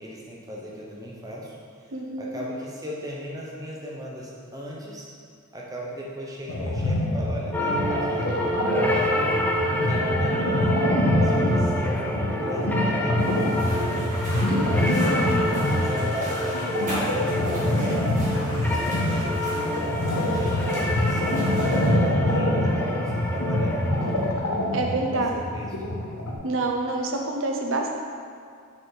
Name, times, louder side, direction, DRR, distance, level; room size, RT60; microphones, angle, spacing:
voice 1, 0.0-5.1 5.5-8.3 8.8-9.2 9.7-10.8 11.2-13.7 14.2-15.2 15.6-18.0 18.5-21.3 21.7-24.4 25.1-25.7, equal, 15° right, -4 dB, 0.9 m, -37 dB
voice 2, 1.9-2.4 14.5-15.4 24.7-25.3 26.4-27.9, right 2 dB, 60° right, 2 dB, 0.7 m, -28 dB
sound 1, 6.5-26.4, left 1 dB, 80° left, 0.9 m, -25 dB
sound 2, 7.5-24.3, equal, 5° left, 0.4 m, -28 dB
sound 3, 13.2-21.9, equal, 35° right, 1.6 m, -38 dB
6.5 x 4.8 x 4.0 m, 2.2 s
head